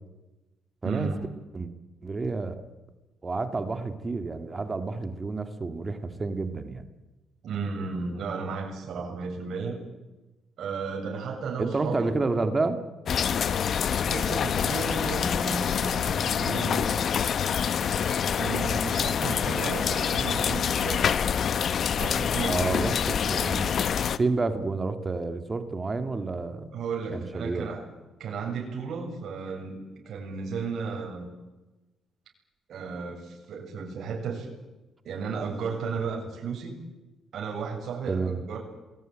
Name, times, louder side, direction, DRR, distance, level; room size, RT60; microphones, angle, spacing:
voice 1, 0.8-1.3 7.4-9.8 10.6-12.2 14.1-16.9 18.4-21.1 22.0-22.7 26.7-27.8 28.2-31.3 32.7-34.5 35.0-36.7 37.3-38.6, right 5 dB, 65° right, 0 dB, 7.5 m, -34 dB
voice 2, 2.0-2.6 3.2-6.8 11.6-12.8 22.5-23.8 24.2-26.8 27.1-27.7 38.1-38.4, right 3 dB, 30° right, 8 dB, 2.3 m, -29 dB
sound 1, 13.1-24.2, left 7 dB, 60° left, 1.1 m, -26 dB
28.0 x 21.5 x 9.1 m, 1.1 s
cardioid pair, 90°, 0 cm